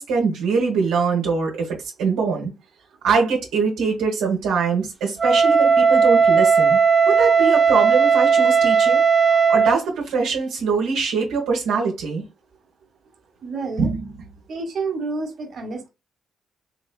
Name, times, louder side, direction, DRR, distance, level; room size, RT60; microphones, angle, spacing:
voice 1, 0.0-2.5 3.0-6.8 7.1-9.0 9.3-12.2 13.8-14.0, right 5 dB, 85° right, 1.2 m, -23 dB
Wind instrument woodwind instrument, 5.2-9.8, right 5 dB, 35° right, 0.5 m, -16 dB
voice 2, 13.4-13.9 14.5-15.9, right 3 dB, 60° right, 1.4 m, -29 dB
3.7 x 3.2 x 2.2 m
supercardioid pair, 55°, 0 cm